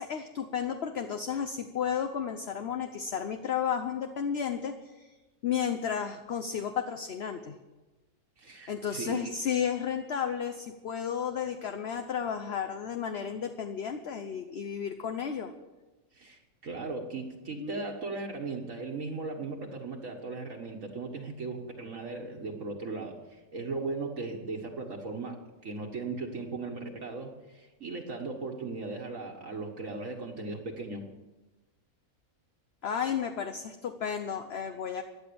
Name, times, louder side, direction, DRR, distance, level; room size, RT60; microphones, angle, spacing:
voice 1, 0.0-5.1 5.4-7.6 8.7-15.5 17.6-17.8 32.8-35.0, left 8 dB, 50° left, 7 dB, 1.0 m, -33 dB
voice 2, 8.4-9.3 16.1-31.1, right 3 dB, 60° right, 0 dB, 1.8 m, -37 dB
16.5 x 10.5 x 6.9 m, 1.1 s
omnidirectional pair, 1.5 m